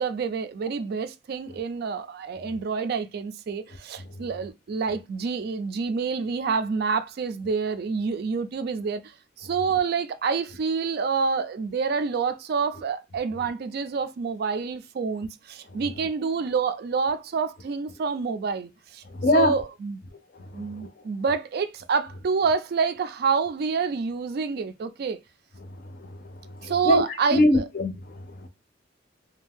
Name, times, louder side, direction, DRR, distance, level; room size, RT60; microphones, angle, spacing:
voice 1, 0.0-9.0 9.4-19.0 19.3-20.0 20.5-25.2 26.6-27.6, right 5 dB, 55° right, 0.3 m, -27 dB
voice 2, 19.1-19.5 20.5-20.9 26.0-26.2 26.6-28.5, left 1 dB, 50° left, 0.5 m, -23 dB
2.6 x 2.2 x 3.4 m
head